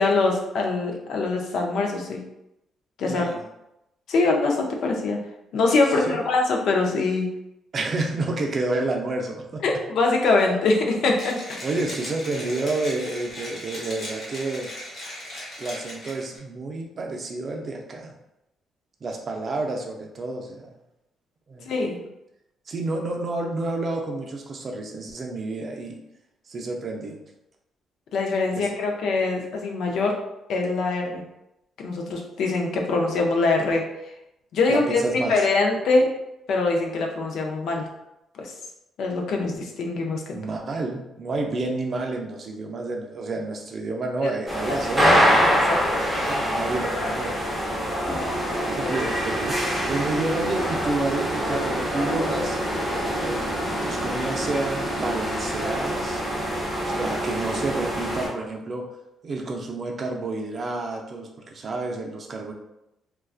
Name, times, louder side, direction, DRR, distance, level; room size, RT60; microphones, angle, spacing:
voice 1, 0.0-2.2 3.0-3.2 4.1-5.2 5.5-7.3 9.6-11.4 21.7-22.0 28.1-30.1 30.5-31.2 31.8-33.8 34.5-35.0 35.3-36.1 36.5-37.9 38.3-38.5 39.0-40.3 44.2-44.3 45.7-46.0 48.8-48.9, left 3 dB, 75° left, 1 dB, 0.5 m, -23 dB
voice 2, 3.1-3.5 6.0-6.2 7.7-9.6 11.6-14.7 15.6-18.1 19.0-20.7 21.5-21.7 22.0-22.1 22.7-26.0 26.5-27.2 28.5-28.7 34.7-35.5 39.5-39.6 40.3-45.6 46.0-47.3 48.6-49.6 49.9-52.6 53.0-53.5 53.8-56.2 56.9-58.9 59.2-62.5, right 2 dB, 45° right, 1 dB, 0.4 m, -30 dB
Mechanisms, 11.1-16.4, left 1 dB, 55° left, 0.9 m, -37 dB
sound 1, 44.5-58.3, equal, 10° right, 0.8 m, -25 dB
2.4 x 2.2 x 2.3 m, 0.87 s
cardioid pair, 90°, 0 cm